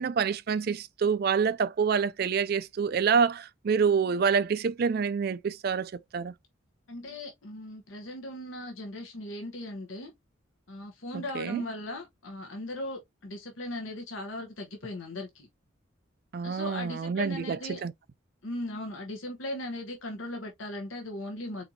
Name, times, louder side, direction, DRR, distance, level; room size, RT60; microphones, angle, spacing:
voice 1, 0.0-6.3 11.1-11.6 16.3-17.9, right 6 dB, 45° right, 0.3 m, -27 dB
voice 2, 6.9-10.1 10.7-15.5 16.4-17.8 18.4-21.7, left 1 dB, 70° left, 1.0 m, -38 dB
4.3 x 4.1 x 2.7 m
head